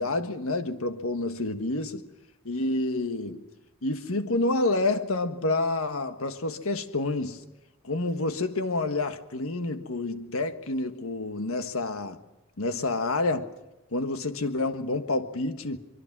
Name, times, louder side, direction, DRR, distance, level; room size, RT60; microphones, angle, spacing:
voice 1, 0.0-2.0 2.4-3.4 3.8-7.4 7.8-12.2 12.6-13.5 13.9-15.8, left 2 dB, 80° left, 1.5 m, -28 dB
25.0 x 22.5 x 6.1 m
head